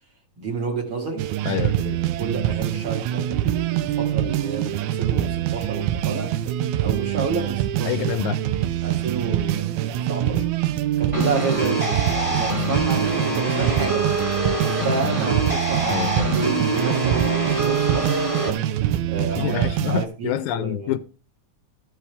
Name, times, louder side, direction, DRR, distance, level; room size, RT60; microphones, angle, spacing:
voice 1, 0.4-1.6 1.9-6.3 6.8-8.0 8.8-9.7 10.1-10.6 11.0-14.2 14.7-18.6 19.1-21.0, right 4 dB, 45° right, 2.6 m, -30 dB
sound 1, 1.2-20.1, right 12 dB, 80° right, 2.0 m, -24 dB
voice 2, 1.5-2.0 7.9-8.4 15.9-16.3 19.3-21.0, left 13 dB, 80° left, 2.0 m, -27 dB
sound 2, 11.1-18.5, right 1 dB, 15° right, 1.6 m, -25 dB
14.0 x 5.7 x 3.4 m
omnidirectional pair, 3.5 m